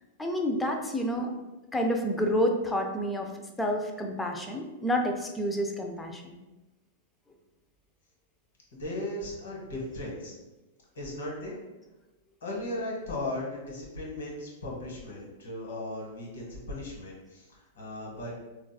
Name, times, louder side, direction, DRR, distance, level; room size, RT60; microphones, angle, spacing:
voice 1, 0.2-1.3 1.7-3.3 3.6-6.4, equal, 10° left, 2 dB, 0.4 m, -29 dB
voice 2, 8.7-10.3 10.9-11.6 12.4-18.3, left 1 dB, 80° left, -3 dB, 1.2 m, -37 dB
3.9 x 2.3 x 2.2 m, 1.1 s
hypercardioid pair, 130°, 0 cm